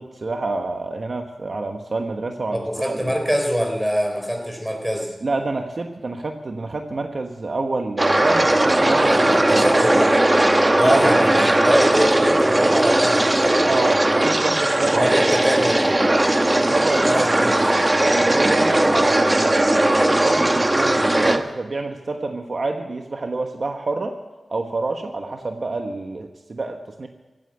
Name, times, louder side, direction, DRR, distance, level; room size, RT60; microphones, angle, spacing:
voice 1, 0.0-3.1 5.2-9.8 10.8-11.2 13.7-15.0 16.6-17.3 18.1-24.1 24.5-27.1, right 3 dB, 55° right, 4 dB, 1.2 m, -27 dB
voice 2, 2.5-5.1 9.0-10.1 10.8-13.6 14.9-16.0 17.0-17.8, equal, 5° right, 2 dB, 3.8 m, -24 dB
sound 1, 8.0-21.4, right 1 dB, 25° right, 1.1 m, -18 dB
16.0 x 9.1 x 8.7 m, 1.1 s
wide cardioid pair, 85°, 0 cm